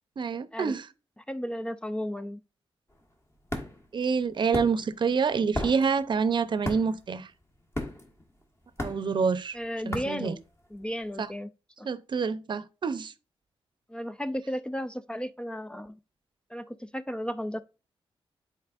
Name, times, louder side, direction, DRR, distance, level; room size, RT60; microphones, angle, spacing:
voice 1, 0.2-0.8 3.9-7.3 8.8-9.6 9.9-10.3 11.2-11.3 11.8-13.1, right 5 dB, 50° right, 0.6 m, -27 dB
voice 2, 1.2-2.4 9.5-10.4 10.7-11.5 11.8-11.9 13.9-16.0 16.5-17.6, equal, 10° left, 0.3 m, -34 dB
sound 1, 2.9-11.0, left 1 dB, 25° left, 1.5 m, -37 dB
9.6 x 4.3 x 2.5 m
cardioid pair, 90°, 10 cm